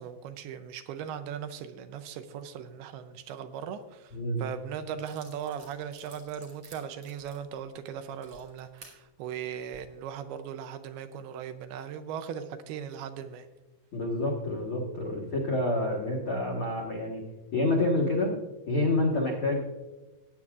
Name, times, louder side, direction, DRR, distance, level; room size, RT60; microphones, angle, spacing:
voice 1, 0.0-13.5, right 8 dB, 80° right, 9 dB, 2.4 m, -38 dB
voice 2, 4.1-4.4 13.9-17.2 17.5-18.4 18.7-19.6, left 2 dB, 70° left, -2 dB, 1.2 m, -28 dB
sound 1, 5.0-9.0 9.5-9.8, right 3 dB, 45° right, 2.4 m, -53 dB
19.0 x 8.7 x 2.4 m, 1.1 s
omnidirectional pair, 4.7 m